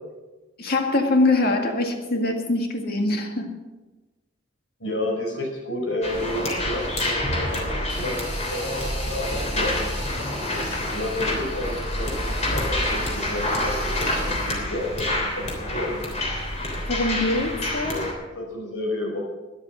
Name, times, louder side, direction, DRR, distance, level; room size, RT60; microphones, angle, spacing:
voice 1, 0.6-3.5 10.7-10.8 16.9-18.0, left 2 dB, 55° left, 1.9 m, -23 dB
voice 2, 4.8-9.7 10.5-16.0 17.8-19.2, left 1 dB, 80° left, 5.2 m, -31 dB
sound 1, 6.0-18.1, left 1 dB, 35° left, 3.4 m, -27 dB
13.5 x 10.5 x 6.2 m
head